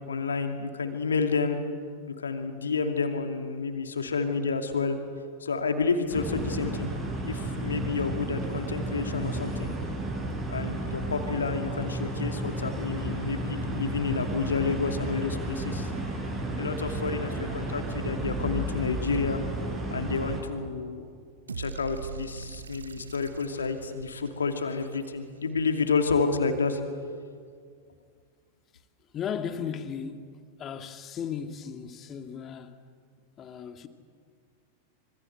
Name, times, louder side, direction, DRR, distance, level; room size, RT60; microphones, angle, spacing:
voice 1, 0.0-1.6 2.2-5.0 5.4-6.9 7.2-9.7 10.5-15.9 16.6-19.4 19.9-21.0 21.6-26.8, left 4 dB, 70° left, 2.5 m, -29 dB
sound 1, 6.1-20.4, right 2 dB, 25° right, 7.8 m, -33 dB
sound 2, 18.1-20.9, left 3 dB, 5° right, 5.6 m, -39 dB
sound 3, 21.5-25.6, right 5 dB, 75° right, 1.0 m, -42 dB
voice 2, 29.1-30.3 30.6-32.8 33.4-33.9, left 7 dB, 30° left, 2.0 m, -36 dB
26.0 x 25.5 x 8.0 m
figure-of-eight pair, 90°, 0 cm